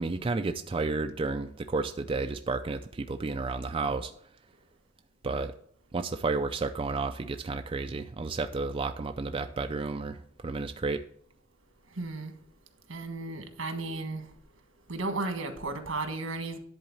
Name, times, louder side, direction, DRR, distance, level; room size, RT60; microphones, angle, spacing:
voice 1, 0.0-4.1 5.2-5.5 5.9-11.0, right 3 dB, 25° right, 0.4 m, -31 dB
voice 2, 12.0-12.3 12.9-14.2 14.9-16.6, right 3 dB, 80° right, 1.5 m, -34 dB
10.5 x 4.0 x 7.2 m
head